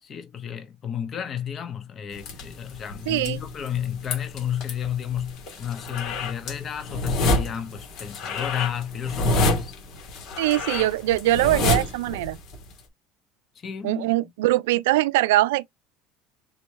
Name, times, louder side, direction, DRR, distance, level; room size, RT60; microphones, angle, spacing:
voice 1, 0.0-9.8 13.5-14.1, left 9 dB, 40° left, 1.1 m, -32 dB
sound 1, 2.1-12.8, left 2 dB, 60° left, 1.9 m, -28 dB
voice 2, 3.1-3.4 10.4-12.4 13.8-15.7, right 16 dB, 90° right, 0.3 m, -22 dB
4.2 x 3.1 x 3.1 m
supercardioid pair, 100°, 0 cm